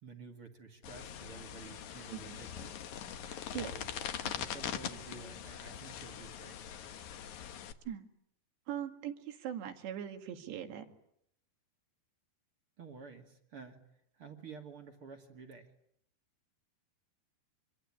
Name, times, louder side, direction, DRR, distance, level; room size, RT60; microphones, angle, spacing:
voice 1, 0.0-2.7 3.4-3.9 4.3-6.6 12.8-13.8 14.1-15.7, right 5 dB, 40° right, 4 dB, 2.4 m, -51 dB
sound 1, 0.8-7.7, left 9 dB, 60° left, 2.0 m, -42 dB
voice 2, 3.3-3.7 4.1-4.4 7.9-8.1 8.7-10.9, right 10 dB, 80° right, 6 dB, 4.2 m, -41 dB
25.5 x 23.0 x 8.9 m, 0.73 s
omnidirectional pair, 4.9 m